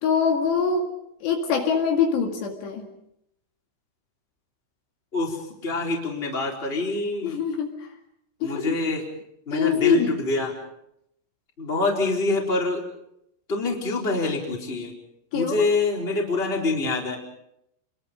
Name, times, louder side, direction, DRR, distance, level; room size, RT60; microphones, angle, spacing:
voice 1, 0.0-0.9 1.2-2.9 7.2-7.9 8.4-8.8 9.5-10.2 15.3-15.7, left 6 dB, 65° left, 2 dB, 4.1 m, -24 dB
voice 2, 5.1-7.4 8.4-9.0 9.5-10.5 11.6-12.8 13.5-14.9 15.3-17.2, left 3 dB, 15° left, 0 dB, 3.8 m, -25 dB
29.5 x 22.5 x 5.3 m, 0.77 s
omnidirectional pair, 5.6 m